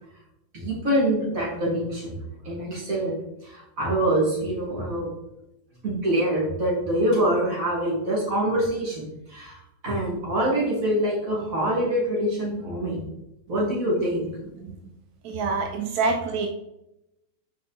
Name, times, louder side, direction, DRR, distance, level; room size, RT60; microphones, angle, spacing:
voice 1, 0.5-2.2 2.4-3.1 3.4-5.1 5.8-13.0 13.5-14.3, right 1 dB, 40° right, -5 dB, 2.8 m, -25 dB
voice 2, 15.2-16.5, right 4 dB, 70° right, 4 dB, 0.9 m, -26 dB
5.2 x 4.8 x 4.3 m, 0.86 s
omnidirectional pair, 2.1 m